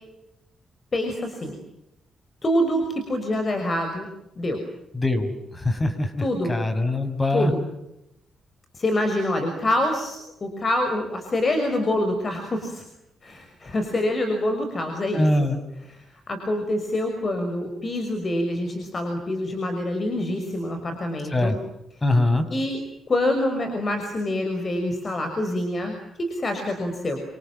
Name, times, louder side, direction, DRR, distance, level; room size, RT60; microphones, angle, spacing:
voice 1, 0.9-1.6 2.4-4.1 4.4-4.6 6.2-6.5 7.3-7.6 8.7-12.8 13.2-15.2 16.3-21.6 22.5-22.8 23.1-27.2, left 1 dB, 40° left, 6 dB, 6.0 m, -26 dB
voice 2, 4.9-7.5 15.1-15.6 21.3-21.6 22.0-22.4, left 2 dB, 25° left, 10 dB, 5.7 m, -23 dB
27.5 x 27.5 x 7.8 m, 0.87 s
cardioid pair, 70°, 0 cm